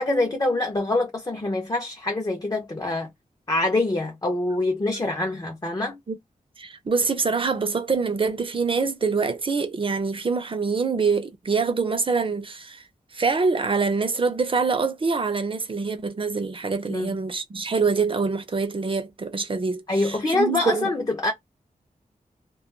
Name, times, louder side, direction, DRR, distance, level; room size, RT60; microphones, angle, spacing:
voice 1, 0.0-3.1 3.5-6.0 16.9-17.1 19.9-21.3, left 2 dB, 25° left, 0.5 m, -25 dB
voice 2, 6.6-12.8 13.1-20.9, right 4 dB, 35° right, 0.5 m, -25 dB
2.2 x 2.2 x 3.0 m
wide cardioid pair, 125°, 15 cm